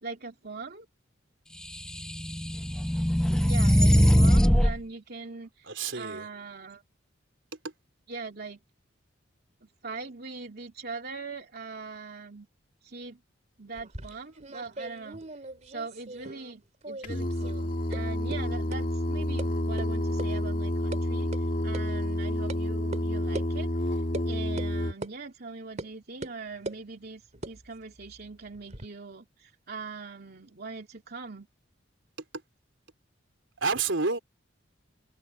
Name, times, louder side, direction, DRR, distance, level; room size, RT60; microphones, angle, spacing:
voice 1, 0.0-0.9 3.4-6.8 8.1-8.6 9.6-12.5 12.8-13.2 13.6-15.2 15.7-31.5, right 4 dB, 55° right, 2.9 m, -41 dB
sound 1, 1.8-4.8, equal, 5° left, 0.6 m, -21 dB
voice 2, 5.7-6.3 33.6-34.2, right 4 dB, 70° right, 3.7 m, -28 dB
sound 2, 13.7-16.6 16.8-17.6 17.9-18.0 18.3-18.4 18.7-18.8 19.4-19.5 19.8-19.9 20.2-20.3 20.6-21.0 21.3-21.4 21.7-21.8 22.5-22.6 22.9-23.0 23.3-23.5 24.1-24.3 24.6-24.7 25.0-25.1 25.8-25.9 26.2-26.8 27.3-28.9, right 2 dB, 35° right, 3.1 m, -40 dB
Singing, 17.0-24.9, left 1 dB, 40° left, 2.7 m, -29 dB
head